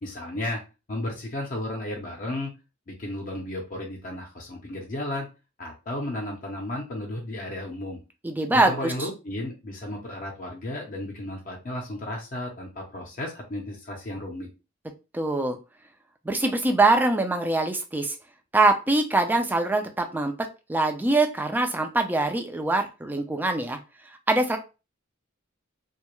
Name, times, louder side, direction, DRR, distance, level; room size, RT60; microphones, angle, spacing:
voice 1, 0.0-0.6 0.9-2.5 2.9-5.3 5.6-8.0 8.7-14.5, left 1 dB, 40° left, -1 dB, 0.6 m, -33 dB
voice 2, 8.2-9.1 15.1-15.6 16.3-18.1 18.5-20.3 20.7-23.8 24.3-24.6, right 2 dB, 10° right, 5 dB, 0.3 m, -23 dB
2.2 x 2.0 x 2.9 m, 0.30 s
head